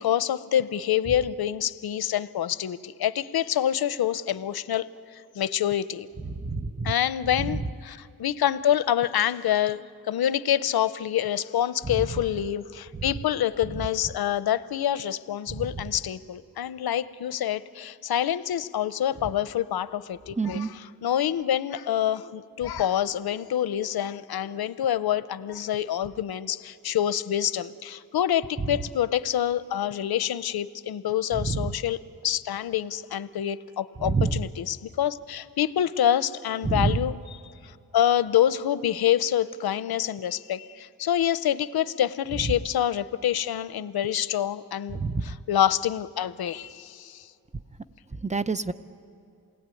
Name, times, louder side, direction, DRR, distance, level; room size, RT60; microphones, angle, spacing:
voice 1, 0.0-4.9 5.1-6.1 6.8-9.8 10.1-20.7 21.0-32.0 32.2-37.2 37.9-47.3, left 10 dB, 85° left, 15 dB, 0.7 m, -26 dB
voice 2, 6.2-6.9 7.4-7.6 15.5-15.6 20.4-20.7 28.6-28.8 31.4-31.7 34.0-34.5 36.6-37.0 44.9-45.4 48.2-48.7, right 4 dB, 20° right, 13 dB, 0.7 m, -27 dB
28.5 x 19.0 x 9.1 m, 2.5 s
cardioid pair, 85°, 36 cm